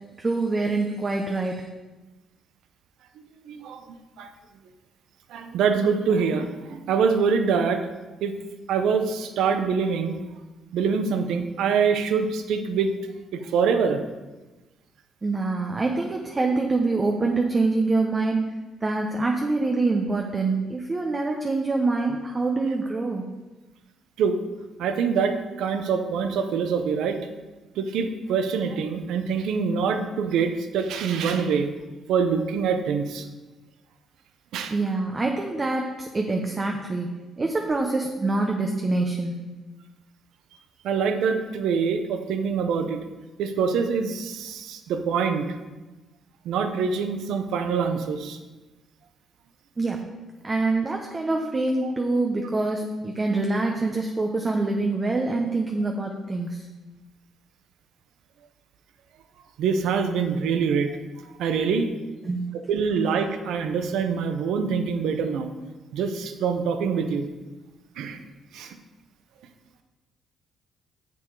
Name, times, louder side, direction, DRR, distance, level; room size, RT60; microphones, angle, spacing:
voice 1, 0.2-1.7 15.2-18.4 18.8-23.2 34.7-39.4 49.8-50.0 50.4-56.6 62.2-62.5, right 3 dB, 30° right, 2 dB, 0.8 m, -25 dB
voice 2, 3.5-4.3 5.3-7.8 8.2-8.3 8.7-10.3 10.7-12.9 13.3-14.0 24.2-24.4 24.8-27.2 27.8-31.7 32.1-33.3 34.5-34.7 40.8-43.0 43.4-45.5 46.4-48.4 51.8-51.9 59.6-61.0 61.4-61.9 62.7-65.5 65.9-67.3 68.0-68.2 68.5-68.8, right 6 dB, 85° right, 7 dB, 0.8 m, -25 dB
6.9 x 6.9 x 4.8 m, 1.2 s
cardioid pair, 90°, 0 cm